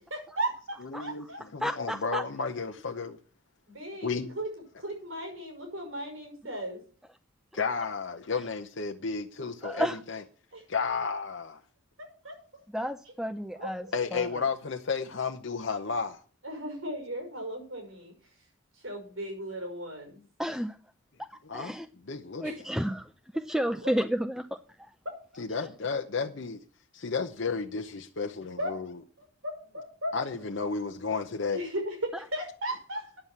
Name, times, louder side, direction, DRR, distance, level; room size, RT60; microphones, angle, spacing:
voice 1, 0.1-1.1 3.7-4.1 4.3-4.5 4.8-6.8 10.5-10.6 12.2-12.6 13.6-13.9 16.4-18.1 18.8-20.2 22.4-22.6 23.8-23.9 25.0-25.1 28.6-28.7 29.4-30.1 31.5-33.1, right 1 dB, 90° right, 5.7 m, -36 dB
voice 2, 0.8-3.2 4.0-4.3 7.5-10.2 10.7-11.6 13.9-16.2 21.5-21.8 22.1-22.7 25.4-26.6 26.9-29.0 30.1-31.6, left 5 dB, 65° left, 0.9 m, -32 dB
voice 3, 1.6-2.2 9.6-10.0 12.7-14.4 20.4-20.8 21.2-21.9 22.4-24.9, equal, ahead, 0.5 m, -32 dB
10.0 x 7.4 x 8.0 m
head